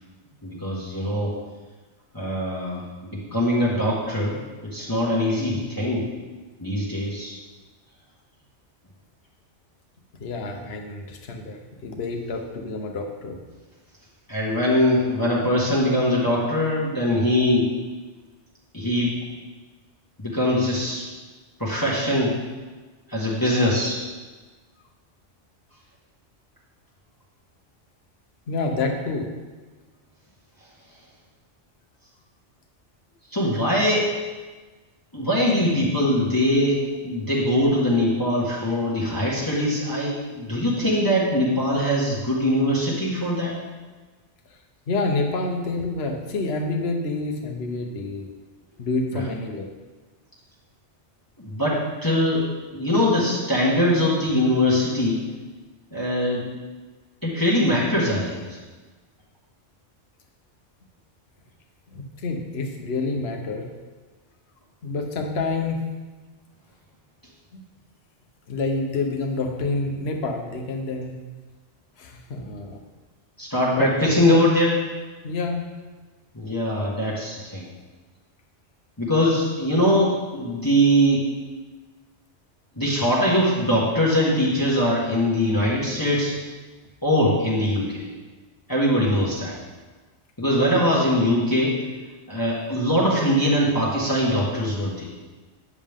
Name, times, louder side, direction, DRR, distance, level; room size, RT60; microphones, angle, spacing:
voice 1, 0.4-1.3 2.1-4.4 4.6-6.1 6.6-7.4 14.3-17.7 18.7-19.2 20.2-21.0 21.6-22.3 23.1-24.0 33.3-34.1 35.1-43.5 49.1-49.2 51.4-55.2 55.9-56.5 57.2-58.6 73.4-74.8 76.3-77.6 79.0-81.3 82.7-86.3 87.0-88.0 88.7-89.6 90.4-91.8 92.3-95.1, left 1 dB, 15° left, -7 dB, 1.5 m, -22 dB
voice 2, 10.2-13.4 28.5-29.3 44.9-48.2 48.8-49.7 61.9-63.7 64.8-65.8 67.5-67.6 68.5-71.2 72.0-72.8 73.8-73.9 75.2-75.7, left 3 dB, 60° left, 2 dB, 1.2 m, -28 dB
9.8 x 7.3 x 3.6 m, 1.3 s
omnidirectional pair, 1.2 m